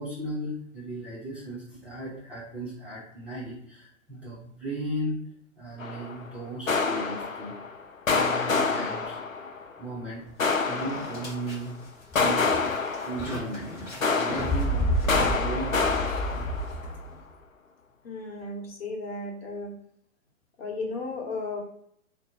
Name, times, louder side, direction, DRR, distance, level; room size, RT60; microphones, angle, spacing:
voice 1, 0.0-5.2 5.6-7.5 8.1-9.5 9.8-11.8 12.1-12.4 13.0-17.0, right 1 dB, 5° right, -9 dB, 0.7 m, -36 dB
sound 1, 5.8-6.2 6.7-7.8 8.1-9.7 10.4-11.6 12.2-13.7 14.0-16.9, left 4 dB, 90° left, 0.6 m, -28 dB
sound 2, 10.3-10.4 10.8-17.1, equal, 25° left, 1.1 m, -31 dB
voice 2, 18.0-19.7 20.6-21.6, left 3 dB, 50° left, 1 dB, 1.1 m, -34 dB
4.0 x 2.2 x 4.0 m, 0.69 s
figure-of-eight pair, 115°, 39 cm